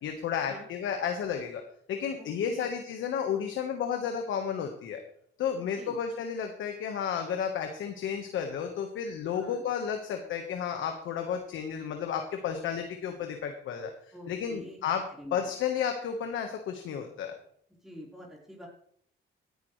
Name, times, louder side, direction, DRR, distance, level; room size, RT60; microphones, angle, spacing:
voice 1, 0.0-1.6 1.9-5.0 5.4-13.9 14.3-15.0 15.3-17.3, left 7 dB, 75° left, 5 dB, 1.4 m, -32 dB
voice 2, 2.2-2.7 5.8-6.0 9.3-9.6 14.1-14.8 15.2-15.5 17.8-18.7, left 1 dB, ahead, -4 dB, 4.3 m, -46 dB
17.0 x 11.0 x 3.3 m, 0.64 s
cardioid pair, 90°, 20 cm